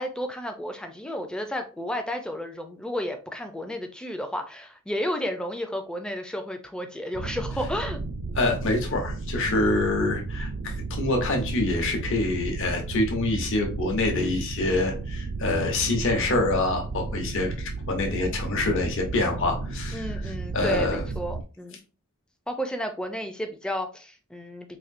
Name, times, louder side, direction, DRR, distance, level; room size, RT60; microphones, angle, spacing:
voice 1, 0.0-8.0 19.9-21.8 22.5-24.8, equal, 5° left, 5 dB, 0.4 m, -32 dB
sound 1, 7.1-21.4, right 3 dB, 85° right, 0.5 m, -33 dB
voice 2, 8.3-20.0 20.5-21.0, left 2 dB, 60° left, 1 dB, 0.9 m, -26 dB
4.2 x 2.6 x 2.5 m, 0.35 s
head